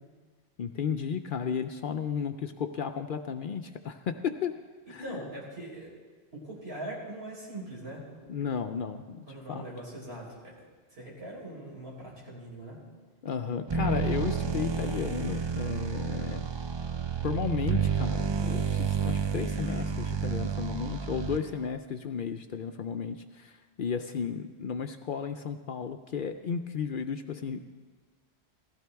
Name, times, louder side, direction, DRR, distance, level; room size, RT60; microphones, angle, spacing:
voice 1, 0.6-4.6 4.9-5.2 8.3-9.6 13.2-16.4 17.2-27.6, left 7 dB, 60° left, 8 dB, 0.6 m, -34 dB
voice 2, 5.0-5.9 6.3-8.0 9.3-12.8, right 1 dB, 65° right, -4 dB, 4.4 m, -41 dB
sound 1, 13.7-21.7, right 6 dB, 40° right, 0.4 m, -30 dB
16.5 x 15.5 x 3.5 m, 1.4 s
omnidirectional pair, 1.1 m